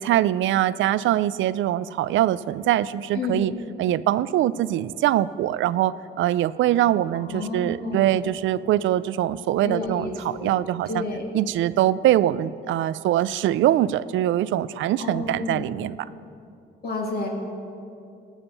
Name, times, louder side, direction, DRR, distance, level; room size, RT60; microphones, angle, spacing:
voice 1, 0.0-3.5 3.8-11.0 11.3-16.0, right 13 dB, 75° right, 17 dB, 0.4 m, -23 dB
voice 2, 3.1-3.5 7.2-8.1 9.6-10.5 10.9-11.3 15.0-15.6 16.8-17.3, left 3 dB, 50° left, -1 dB, 2.6 m, -30 dB
18.5 x 7.2 x 6.8 m, 2.5 s
cardioid pair, 90°, 20 cm